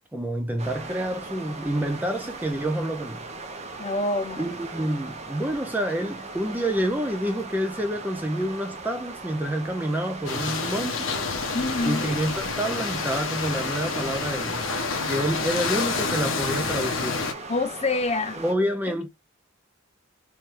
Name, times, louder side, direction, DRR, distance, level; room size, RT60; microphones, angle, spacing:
voice 1, 0.1-3.2 4.4-11.1 11.8-14.7 15.0-17.2 18.4-19.1, right 1 dB, 10° right, 0.5 m, -28 dB
sound 1, 0.6-18.5, right 3 dB, 30° right, 0.8 m, -39 dB
voice 2, 3.8-4.6 11.5-12.1 17.5-18.4, left 2 dB, 30° left, 0.9 m, -26 dB
sound 2, 10.3-17.3, left 4 dB, 65° left, 1.0 m, -28 dB
3.5 x 3.2 x 4.5 m
head